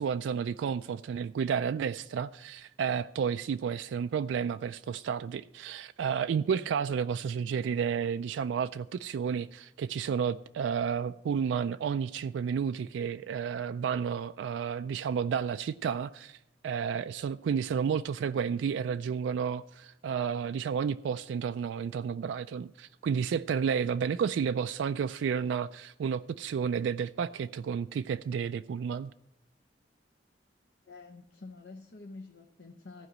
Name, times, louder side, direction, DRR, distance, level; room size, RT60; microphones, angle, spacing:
voice 1, 0.0-29.1, right 7 dB, 85° right, 0.3 m, -31 dB
voice 2, 30.9-33.1, left 3 dB, 65° left, 0.7 m, -48 dB
14.5 x 5.0 x 8.0 m
head